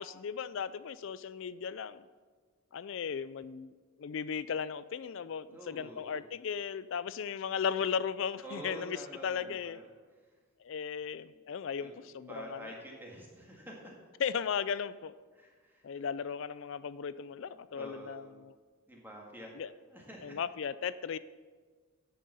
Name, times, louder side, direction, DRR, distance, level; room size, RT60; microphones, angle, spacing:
voice 1, 0.0-2.0 2.7-9.0 9.2-9.8 10.6-12.7 14.2-15.1 15.8-18.5 19.6-19.7 20.2-21.2, left 7 dB, 60° left, 16 dB, 0.4 m, -36 dB
voice 2, 5.5-6.2 8.4-9.8 11.3-11.4 11.8-11.9 12.3-13.9 15.3-16.1 17.7-18.3 18.9-19.6 19.9-20.4, equal, 10° right, -2 dB, 1.8 m, -47 dB
9.9 x 6.7 x 6.8 m, 1.5 s
head